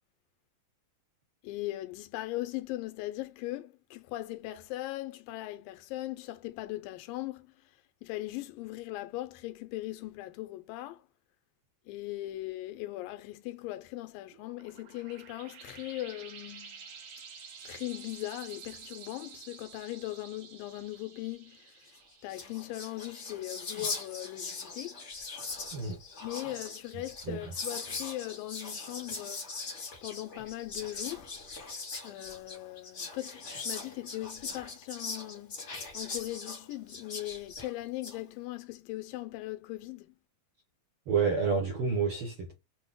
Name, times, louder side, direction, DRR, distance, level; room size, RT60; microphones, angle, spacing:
voice 1, 1.4-7.5 8.0-11.0 11.9-16.9 17.6-21.7 22.2-25.0 26.2-31.4 32.0-40.1, left 17 dB, 90° left, 2.4 m, -39 dB
sound 1, 14.3-23.5, right 6 dB, 90° right, 3.2 m, -50 dB
Whispering, 22.0-22.1 22.2-38.2, left 4 dB, 50° left, 0.8 m, -41 dB
voice 2, 41.1-42.5, right 5 dB, 65° right, 1.4 m, -29 dB
6.3 x 2.2 x 3.6 m
omnidirectional pair, 3.9 m